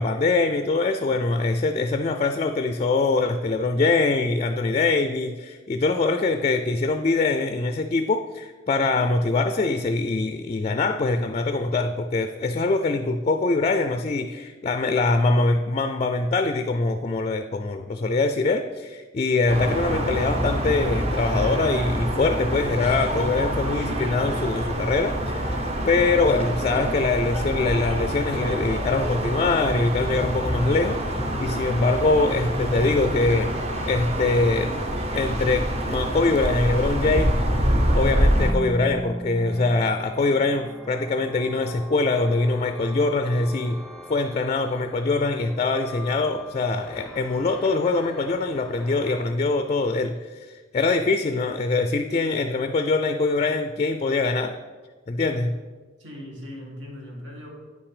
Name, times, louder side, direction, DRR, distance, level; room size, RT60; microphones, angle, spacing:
voice 1, 0.0-33.5 33.8-34.7 35.1-37.5 37.9-43.8 44.1-54.6 55.1-55.5, left 3 dB, 35° left, 8 dB, 0.3 m, -23 dB
sound 1, 19.5-38.5, equal, 35° right, 0.9 m, -26 dB
sound 2, 38.3-49.3, left 1 dB, 5° left, 0.8 m, -39 dB
voice 2, 55.2-55.5 56.0-57.6, left 1 dB, 75° right, -1 dB, 2.1 m, -39 dB
9.2 x 5.9 x 4.9 m, 1.4 s
head